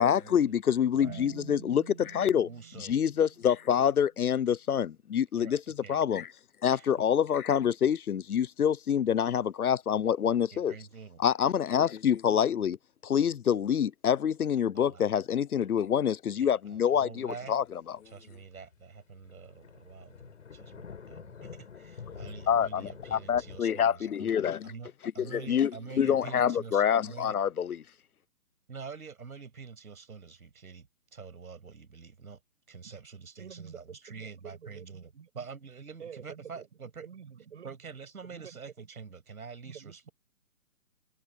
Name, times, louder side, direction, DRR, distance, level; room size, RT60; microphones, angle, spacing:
voice 1, 0.0-2.5 2.8-6.3 6.6-10.7 11.2-12.8 13.0-18.0 22.5-24.7 25.2-25.7 26.0-27.8, left 8 dB, 75° left, 0.9 m, -26 dB
Marimba xylophone, 1.0-4.0, right 9 dB, 25° right, 1.0 m, -48 dB
voice 2, 1.0-1.3 2.4-3.0 5.4-6.0 6.6-6.9 10.5-11.2 14.7-15.0 16.3-17.6 18.1-24.9 25.1-27.4 28.7-32.4 32.7-37.1 37.6-40.1, right 5 dB, 75° right, 7.1 m, -46 dB
sound 1, 17.4-23.6, left 6 dB, 55° left, 7.3 m, -47 dB
voice 3, 33.4-35.3 36.0-36.7 37.0-37.8 38.2-38.6 39.7-40.1, right 7 dB, 50° right, 7.5 m, -48 dB
hypercardioid pair, 165°, 44 cm